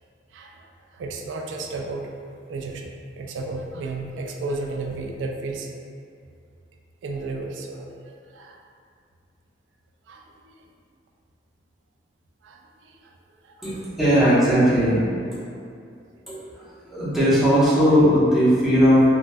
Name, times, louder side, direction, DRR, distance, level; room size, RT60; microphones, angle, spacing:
voice 1, 0.3-0.6 0.9-2.2 2.5-2.9 3.2-5.7 7.0-8.6 10.1-10.2 12.4-13.1 13.4-13.6, right 3 dB, 80° right, 1 dB, 0.3 m, -33 dB
voice 2, 13.6-15.4 16.3-19.0, equal, ahead, -11 dB, 0.7 m, -19 dB
3.3 x 2.2 x 2.5 m, 2.4 s
head